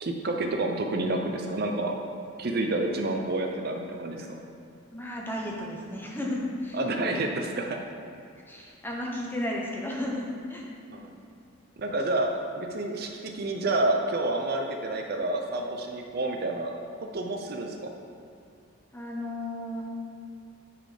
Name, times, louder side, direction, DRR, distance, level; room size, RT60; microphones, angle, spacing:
voice 1, 0.0-1.9 2.4-4.4 6.7-7.8 10.9-11.1 11.8-16.7 17.1-17.8, right 2 dB, 45° right, 2 dB, 0.6 m, -29 dB
voice 2, 4.9-6.8 8.5-10.6 18.9-19.9, left 1 dB, 10° left, -2 dB, 0.9 m, -33 dB
9.7 x 4.2 x 4.9 m, 2.5 s
head